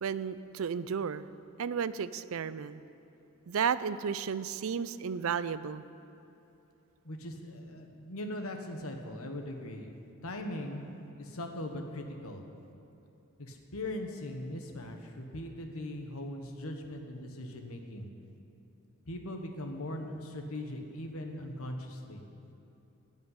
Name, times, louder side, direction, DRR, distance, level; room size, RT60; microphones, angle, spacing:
voice 1, 0.0-1.3 1.6-2.8 3.5-5.8, right 6 dB, 70° right, 15 dB, 0.4 m, -33 dB
voice 2, 7.0-9.9 10.2-10.8 11.2-12.4 13.4-18.1 19.1-22.2, left 1 dB, 75° left, 4 dB, 1.3 m, -40 dB
16.0 x 5.4 x 9.6 m, 2.8 s
head